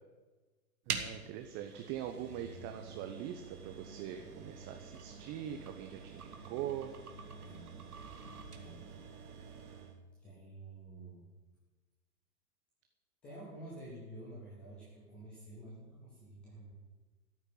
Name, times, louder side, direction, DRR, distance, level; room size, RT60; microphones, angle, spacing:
voice 1, 0.9-6.9, right 10 dB, 25° right, 6 dB, 0.9 m, -42 dB
sound 1, 0.9-10.0, right 5 dB, 75° right, 2.1 m, -46 dB
voice 2, 7.4-7.7 8.5-8.8 10.2-11.3 13.2-16.7, right 1 dB, 5° left, -7 dB, 0.3 m, -50 dB
13.5 x 6.5 x 9.6 m, 1.3 s
figure-of-eight pair, 110°, 46 cm